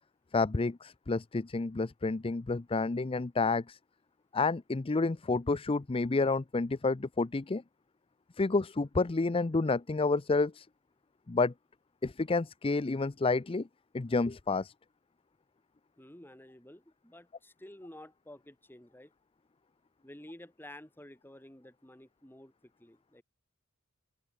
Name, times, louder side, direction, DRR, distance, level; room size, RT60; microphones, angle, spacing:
voice 1, 0.3-3.8 4.3-7.6 8.4-10.7 11.3-11.5 12.0-13.7 13.9-14.7, left 3 dB, 25° left, 0.5 m, -29 dB
voice 2, 16.0-19.1 20.0-23.2, left 1 dB, 10° left, 3.0 m, -51 dB
open air
head